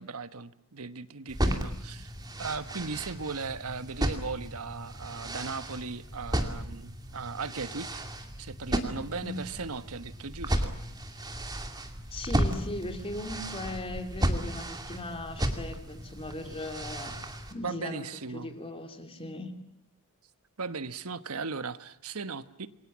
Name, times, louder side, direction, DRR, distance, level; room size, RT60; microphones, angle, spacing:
voice 1, 0.0-2.1 2.4-8.0 8.4-10.8 17.6-18.6 20.6-22.7, right 4 dB, 75° right, 13 dB, 1.3 m, -37 dB
sound 1, 1.3-17.5, right 1 dB, 20° right, 2.4 m, -34 dB
voice 2, 1.4-1.7 9.2-9.4 12.1-17.2 17.5-18.0 18.3-19.5, left 2 dB, 25° left, 6 dB, 3.0 m, -38 dB
28.0 x 23.5 x 7.5 m, 0.79 s
head